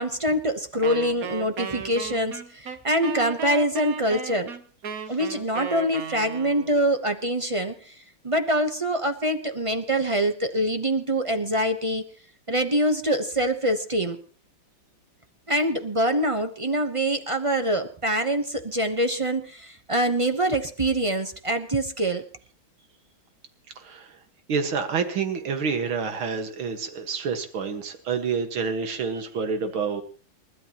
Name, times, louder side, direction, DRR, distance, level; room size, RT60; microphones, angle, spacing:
voice 1, 0.0-4.5 5.1-12.0 12.5-14.2 15.5-22.2, right 1 dB, 30° right, 7 dB, 0.6 m, -25 dB
Wind instrument woodwind instrument, 0.8-6.8, right 6 dB, 50° right, 1.5 m, -35 dB
voice 2, 23.8-24.2 24.5-30.0, right 5 dB, 90° right, 6 dB, 2.5 m, -28 dB
29.0 x 12.5 x 3.0 m, 0.39 s
omnidirectional pair, 2.2 m